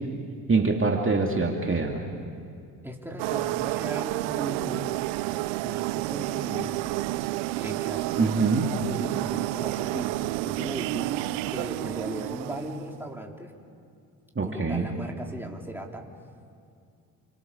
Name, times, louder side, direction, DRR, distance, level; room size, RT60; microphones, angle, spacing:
voice 1, 0.5-2.1 8.2-8.7 14.4-14.8, right 3 dB, 25° right, 1 dB, 2.7 m, -24 dB
voice 2, 2.8-5.0 5.6-7.1 7.6-13.5 14.4-16.1, right 1 dB, 5° right, 1 dB, 3.9 m, -38 dB
sound 1, 3.2-13.0, right 19 dB, 75° right, 0.7 m, -30 dB
29.5 x 24.5 x 7.2 m, 2.4 s
hypercardioid pair, 55°, 46 cm